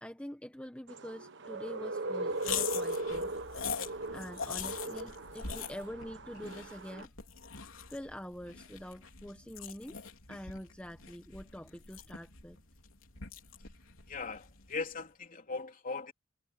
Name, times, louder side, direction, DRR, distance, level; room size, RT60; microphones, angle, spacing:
voice 1, 0.0-3.3 4.1-7.1 7.9-10.0 10.3-12.6, equal, 5° left, 1.2 m, -45 dB
sound 1, 0.9-7.0, right 2 dB, 65° right, 1.4 m, -39 dB
sound 2, 2.4-14.9, left 7 dB, 90° left, 3.5 m, -43 dB
voice 2, 14.1-16.1, left 4 dB, 45° left, 3.3 m, -39 dB
head